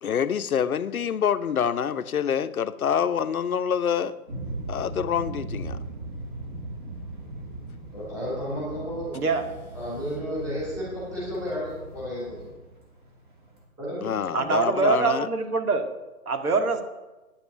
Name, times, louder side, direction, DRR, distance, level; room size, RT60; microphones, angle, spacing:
voice 1, 0.0-4.2 4.7-5.8 14.0-15.3, left 8 dB, 70° left, 0.8 m, -26 dB
sound 1, 4.3-13.6, right 2 dB, 35° right, 2.7 m, -38 dB
voice 2, 7.9-9.1 9.7-12.4 13.8-14.3, equal, 10° right, 4.0 m, -32 dB
voice 3, 9.1-9.5 14.3-15.9 16.3-16.8, right 4 dB, 80° right, 1.9 m, -24 dB
9.6 x 7.3 x 9.3 m
hypercardioid pair, 180°, 44 cm